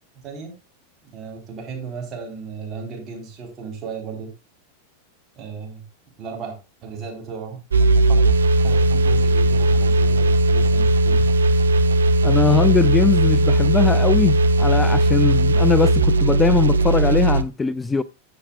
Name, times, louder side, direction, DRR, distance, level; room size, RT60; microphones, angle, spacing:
voice 1, 0.2-0.6 1.1-4.3 5.4-5.8 6.2-8.3 8.6-11.3, right 5 dB, 30° right, 3.9 m, -35 dB
sound 1, 7.7-17.4, right 2 dB, 70° right, 0.7 m, -17 dB
voice 2, 12.2-18.0, left 5 dB, 15° left, 0.4 m, -20 dB
14.5 x 7.2 x 2.4 m
figure-of-eight pair, 90°, 0 cm